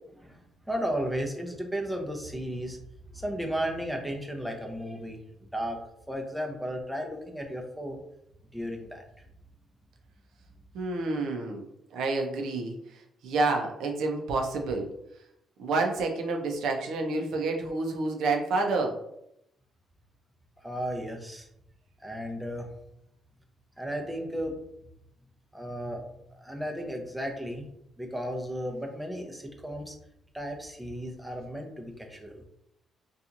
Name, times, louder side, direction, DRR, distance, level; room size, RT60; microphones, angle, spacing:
voice 1, 0.2-2.8 3.1-5.2 5.5-5.8 6.1-8.0 8.5-9.0 20.6-21.5 22.0-22.7 23.8-24.6 25.5-26.0 26.3-27.7 28.0-29.9 30.3-32.4, equal, 5° right, 2 dB, 0.5 m, -34 dB
voice 2, 10.7-11.6 11.9-14.9 15.6-19.0, right 3 dB, 80° right, 3 dB, 0.5 m, -29 dB
2.8 x 2.3 x 2.5 m, 0.77 s
cardioid pair, 90°, 0 cm